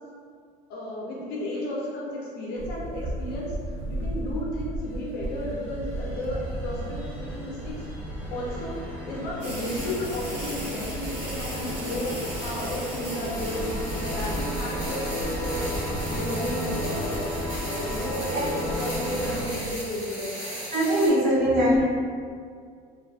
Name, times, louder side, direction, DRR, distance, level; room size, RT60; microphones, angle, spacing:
voice 1, 0.7-3.5 3.9-7.9 8.3-15.7 16.0-17.2 17.6-20.3, left 1 dB, 65° left, -4 dB, 0.5 m, -33 dB
sound 1, 2.6-19.7, right 1 dB, 90° right, 0.4 m, -36 dB
sound 2, 4.8-19.5, equal, 10° left, 0.7 m, -35 dB
sound 3, 9.4-21.1, equal, 15° right, 1.3 m, -37 dB
voice 2, 20.7-21.8, equal, 35° right, -10 dB, 0.6 m, -21 dB
2.5 x 2.3 x 2.3 m, 2.1 s
cardioid pair, 160°, 17 cm